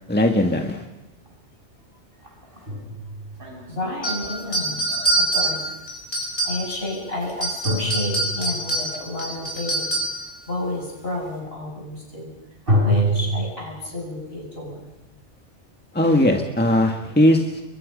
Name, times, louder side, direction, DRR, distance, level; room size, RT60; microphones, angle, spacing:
voice 1, 0.1-0.8 15.9-17.6, left 1 dB, 10° left, 3 dB, 1.7 m, -19 dB
sound 1, 1.3-1.4 2.3-5.9 7.6-8.8 12.7-13.3, equal, 50° right, 5.5 m, -26 dB
voice 2, 3.7-4.8 5.2-5.7 6.4-9.9 10.5-12.3 12.8-14.9, left 1 dB, 55° left, 0 dB, 7.7 m, -31 dB
sound 2, 4.0-6.9 7.3-10.3, right 2 dB, 85° left, 5.7 m, -25 dB
29.5 x 23.0 x 5.3 m, 0.99 s
omnidirectional pair, 1.2 m